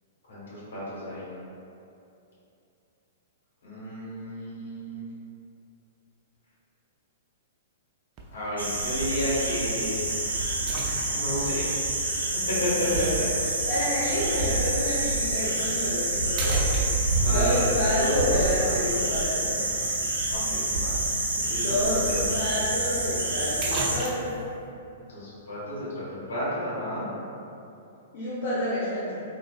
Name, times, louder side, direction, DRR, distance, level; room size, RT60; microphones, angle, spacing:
voice 1, 0.3-1.2 3.6-5.0 8.3-10.0 11.1-11.7 12.5-13.0 15.5-15.6 17.2-17.7 17.9-18.3 18.6-19.0 19.5-19.6 20.3-21.0 21.5-22.4 25.1-27.0, left 1 dB, 75° left, -9 dB, 1.4 m, -32 dB
sound 1, 8.2-8.5 9.1-9.2 10.7-11.5 13.0-13.1 15.2-15.4 15.9-16.0 16.4-17.4 21.6-21.7 21.9-22.0 23.1-23.2 23.6-24.5, right 2 dB, 35° right, 0.5 m, -35 dB
sound 2, 8.6-24.0, right 2 dB, 85° right, 0.7 m, -27 dB
voice 2, 13.2-19.6 21.5-24.3 28.1-29.2, left 1 dB, 55° left, -9 dB, 0.6 m, -29 dB
3.7 x 2.5 x 2.3 m, 2.7 s
hypercardioid pair, 115°, 0 cm